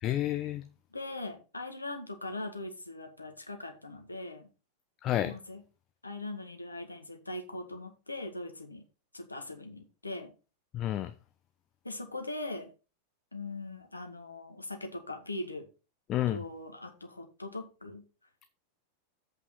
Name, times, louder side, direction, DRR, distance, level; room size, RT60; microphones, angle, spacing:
voice 1, 0.0-0.6 5.0-5.3 10.7-11.1 16.1-16.4, left 13 dB, 35° left, 0.7 m, -30 dB
voice 2, 0.9-4.5 5.2-5.6 6.0-8.8 9.1-10.3 11.8-12.7 13.3-15.7 16.3-18.0, left 2 dB, 80° left, 1.8 m, -40 dB
8.2 x 5.5 x 5.8 m
figure-of-eight pair, 90°, 0 cm